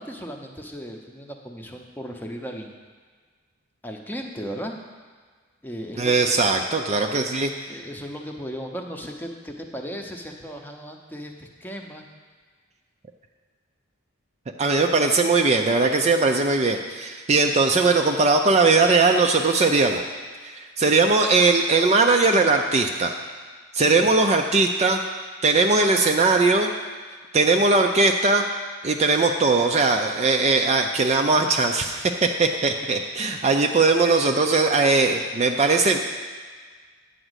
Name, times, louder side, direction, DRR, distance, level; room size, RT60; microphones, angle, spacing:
voice 1, 0.0-2.7 3.8-4.8 5.6-6.6 7.7-12.1 24.0-24.1, equal, 10° left, 2 dB, 0.8 m, -36 dB
voice 2, 6.0-7.5 14.6-20.0 20.4-23.1 23.7-25.0 25.4-26.7 27.3-28.4 28.8-36.0, right 3 dB, 30° right, 4 dB, 0.5 m, -20 dB
10.0 x 5.0 x 8.0 m, 1.5 s
head